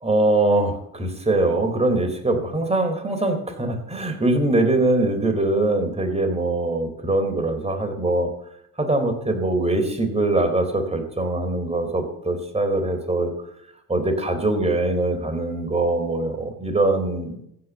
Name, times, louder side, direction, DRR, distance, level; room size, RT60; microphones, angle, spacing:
voice 1, 0.0-8.3 8.8-13.5 13.9-17.4, right 2 dB, 15° right, 4 dB, 3.7 m, -22 dB
15.5 x 6.0 x 9.2 m, 0.75 s
supercardioid pair, 75°, 43 cm